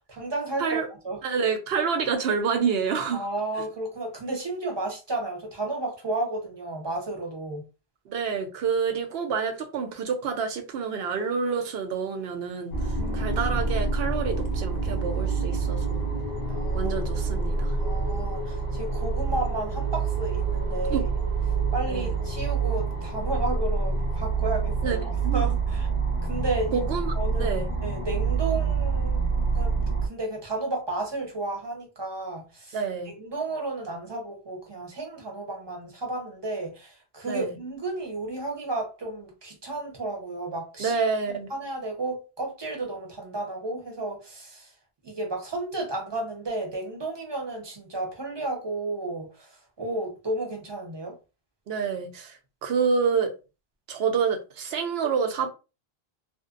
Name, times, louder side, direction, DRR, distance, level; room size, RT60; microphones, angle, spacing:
voice 1, 0.1-1.2 3.1-7.6 13.0-13.4 16.5-16.9 17.8-21.1 21.7-25.9 26.2-26.8 27.2-27.5 27.8-29.2 29.5-29.7 30.0-32.8 33.1-41.0 41.5-44.7 45.0-51.1, right 2 dB, 30° right, 0.7 m, -32 dB
voice 2, 1.2-3.3 8.1-16.0 16.7-17.8 20.9-21.0 21.9-22.1 24.8-25.0 25.2-25.4 26.9-27.7 32.7-33.1 37.3-37.6 40.8-41.5 51.7-53.3 53.9-55.5, right 6 dB, 75° right, 0.8 m, -28 dB
sound 1, 12.7-30.1, right 4 dB, 50° left, 0.8 m, -27 dB
2.6 x 2.1 x 2.4 m
omnidirectional pair, 1.0 m